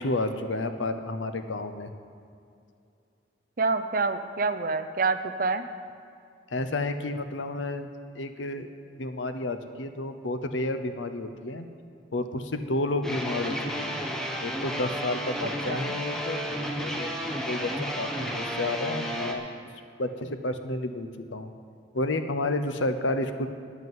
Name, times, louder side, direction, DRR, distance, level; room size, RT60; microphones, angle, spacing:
voice 1, 0.0-1.9 6.5-8.7 9.0-11.7 12.1-14.0 14.4-19.5 20.0-21.5 21.9-23.5, left 2 dB, 90° left, 9 dB, 0.8 m, -31 dB
voice 2, 3.6-5.6 15.7-15.8, right 4 dB, 50° right, 10 dB, 0.6 m, -27 dB
sound 1, 13.0-19.3, equal, 5° left, 1.0 m, -32 dB
9.4 x 8.2 x 9.5 m, 2.4 s
head